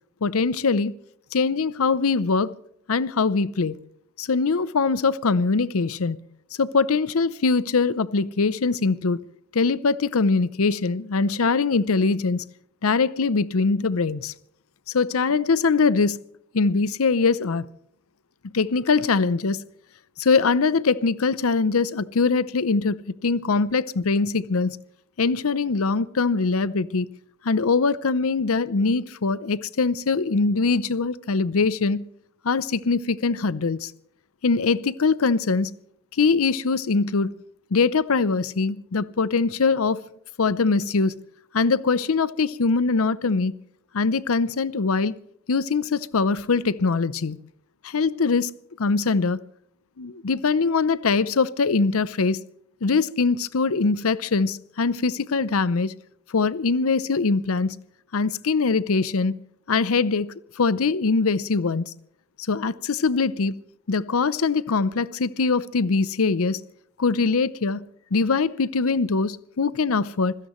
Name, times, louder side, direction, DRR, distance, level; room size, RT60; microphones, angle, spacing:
voice 1, 0.2-0.9 1.3-2.5 2.9-3.7 4.2-6.2 6.6-9.2 9.5-12.4 12.8-14.3 14.9-16.2 16.5-17.7 18.5-19.6 20.2-24.8 25.2-27.1 27.4-32.0 32.4-33.9 34.4-35.7 36.2-37.3 37.7-40.0 40.4-41.1 41.5-43.5 43.9-45.1 45.5-47.4 47.8-48.5 48.8-49.4 50.0-52.4 52.8-55.9 56.3-57.8 58.1-59.4 59.7-61.9 62.5-63.6 63.9-66.6 67.0-67.8 68.1-70.3, left 4 dB, 75° left, 0.7 m, -22 dB
25.5 x 16.5 x 3.1 m
head